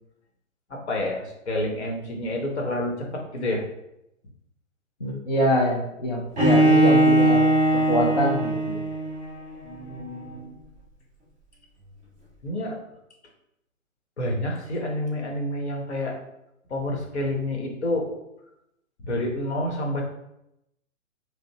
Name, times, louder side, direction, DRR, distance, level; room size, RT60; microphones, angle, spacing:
voice 1, 0.7-3.6 9.6-10.6 12.4-12.8 14.2-16.1 16.7-18.1 19.1-20.0, left 1 dB, 55° left, 0 dB, 1.0 m, -29 dB
voice 2, 5.0-7.4 7.7-8.8, equal, 30° left, -4 dB, 0.4 m, -24 dB
Bowed string instrument, 6.4-9.3, right 1 dB, 20° right, 1.4 m, -20 dB
5.0 x 2.0 x 2.7 m, 0.84 s
figure-of-eight pair, 125°, 40 cm